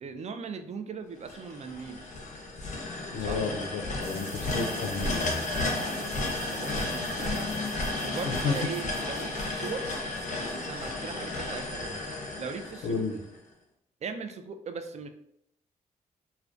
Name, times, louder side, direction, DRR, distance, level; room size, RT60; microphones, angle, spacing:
voice 1, 0.0-2.0 3.2-3.4 5.7-6.2 6.4-7.6 8.0-10.0 10.3-12.0 12.4-13.0 14.0-15.1, right 5 dB, 45° right, 8 dB, 0.4 m, -39 dB
sound 1, 1.3-13.4, left 2 dB, 45° left, 0.6 m, -33 dB
voice 2, 3.1-5.4 8.2-8.6 12.8-13.2, left 4 dB, 90° left, 3 dB, 0.4 m, -32 dB
sound 2, 4.0-12.5, right 2 dB, 80° right, 0.7 m, -48 dB
2.3 x 2.2 x 2.5 m, 0.74 s
supercardioid pair, 45°, 17 cm